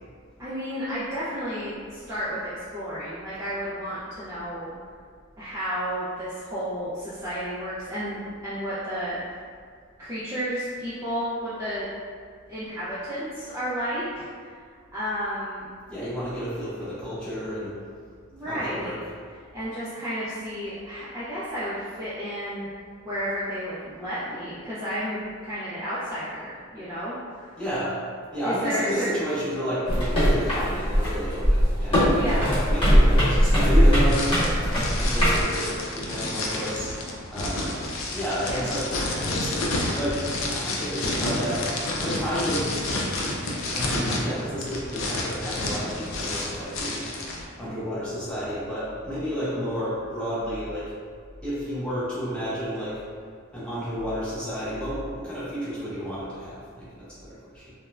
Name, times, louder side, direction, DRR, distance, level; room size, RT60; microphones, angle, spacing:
voice 1, 0.4-4.7 5.4-9.4 10.0-11.9 12.5-14.5 14.9-15.7 18.3-19.0 19.3-22.7 23.0-27.5 28.4-29.1 32.1-32.6 34.7-34.8 38.5-38.7, equal, 15° right, -12 dB, 0.4 m, -32 dB
voice 2, 15.9-17.8 18.4-19.0 27.6-27.9 28.3-36.9 37.3-37.8 38.1-39.6 40.0-42.7 43.2-43.4 43.7-47.0 47.6-50.9 51.4-53.0 53.5-57.7, equal, 5° left, -12 dB, 0.8 m, -31 dB
sound 1, 29.9-35.4, equal, 25° left, 1.1 m, -20 dB
sound 2, 34.1-47.4, left 2 dB, 80° left, 0.4 m, -30 dB
3.2 x 2.1 x 2.3 m, 2.1 s
head